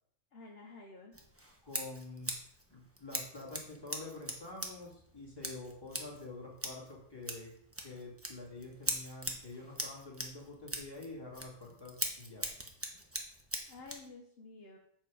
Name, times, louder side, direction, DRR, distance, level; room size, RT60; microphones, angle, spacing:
voice 1, 0.3-1.2 13.7-14.8, left 3 dB, 45° left, 2 dB, 1.0 m, -51 dB
Scissors, 1.1-14.1, right 1 dB, 10° right, 0.8 m, -42 dB
voice 2, 1.6-2.4 2.7-7.5 7.8-12.5, left 2 dB, 15° left, -4 dB, 2.5 m, -47 dB
7.7 x 6.2 x 4.8 m, 0.71 s
omnidirectional pair, 1.7 m